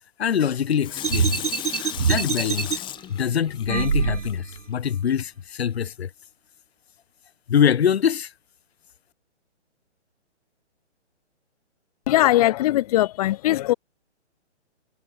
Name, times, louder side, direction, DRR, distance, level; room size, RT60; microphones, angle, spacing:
voice 1, 0.2-1.4 1.8-2.8 3.1-6.1 7.5-8.3, left 8 dB, 60° left, 2.2 m, -24 dB
Water tap faucet / Sink (filling or washing), 0.8-4.6 5.1-5.2, left 12 dB, 15° left, 4.8 m, -36 dB
sound 1, 1.0-2.8 3.7-4.6, right 6 dB, 90° right, 2.6 m, -24 dB
voice 2, 12.1-13.7, left 15 dB, 35° left, 3.1 m, -20 dB
hypercardioid pair, 160°, 35 cm